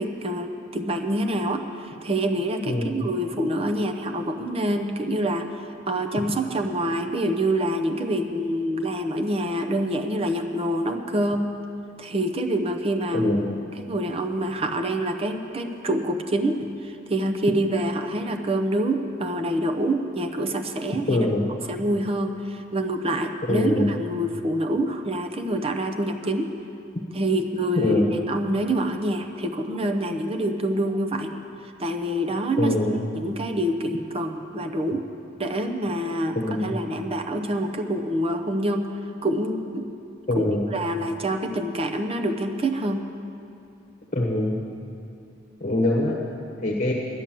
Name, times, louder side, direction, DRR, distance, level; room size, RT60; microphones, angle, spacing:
voice 1, 0.0-11.5 12.0-13.3 13.8-21.3 21.7-26.5 27.1-31.3 31.8-32.7 33.1-35.1 35.4-39.9 40.4-40.5 40.7-43.0, right 1 dB, 30° right, 4 dB, 0.7 m, -26 dB
voice 2, 2.7-3.1 13.1-13.6 21.1-21.5 23.5-23.9 27.7-28.1 32.6-33.0 36.3-36.8 40.3-40.7 44.1-44.6 45.6-46.9, left 1 dB, 40° left, -1 dB, 1.2 m, -24 dB
10.5 x 10.5 x 7.5 m, 2.6 s
head